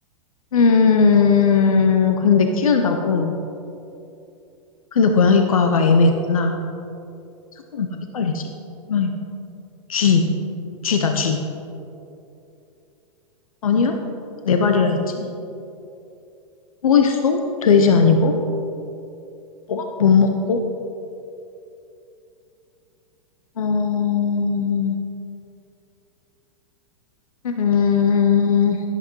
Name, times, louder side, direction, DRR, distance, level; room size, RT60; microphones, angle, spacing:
voice 1, 0.5-3.3 4.9-6.6 7.7-7.9 8.1-8.4 8.9-9.1 9.9-10.3 10.8-11.5 13.6-14.0 14.4-15.3 16.8-18.3 19.7-20.6 23.6-25.0 27.4-28.8, left 5 dB, 80° left, 5 dB, 0.8 m, -18 dB
11.5 x 11.0 x 3.1 m, 2.8 s
hypercardioid pair, 105°, 18 cm